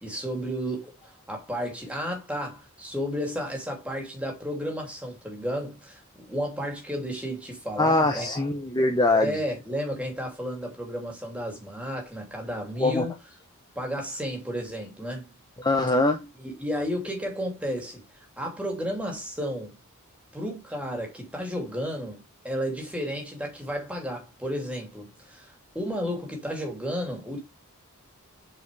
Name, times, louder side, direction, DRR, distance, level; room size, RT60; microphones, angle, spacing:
voice 1, 0.0-8.3 9.1-13.1 13.7-15.3 16.4-19.8 20.3-27.4, equal, 5° right, 2.8 m, -32 dB
voice 2, 7.8-9.4 12.8-13.0 15.6-16.3, left 2 dB, 20° left, 0.7 m, -23 dB
7.5 x 4.9 x 3.4 m
head